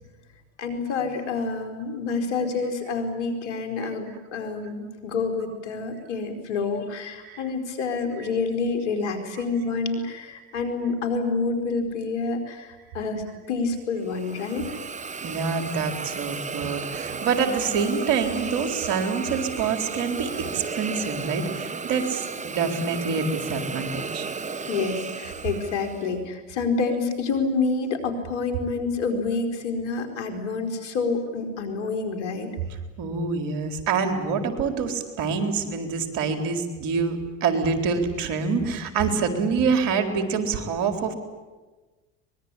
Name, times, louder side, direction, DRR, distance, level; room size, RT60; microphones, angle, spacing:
voice 1, 0.6-14.6 24.7-32.5, left 4 dB, 75° left, 6 dB, 4.6 m, -28 dB
Hiss, 14.0-26.1, right 5 dB, 20° right, 1.2 m, -34 dB
voice 2, 15.2-24.3 32.7-41.1, right 5 dB, 60° right, 6 dB, 4.1 m, -26 dB
24.0 x 21.5 x 9.9 m, 1.3 s
hypercardioid pair, 85°, 38 cm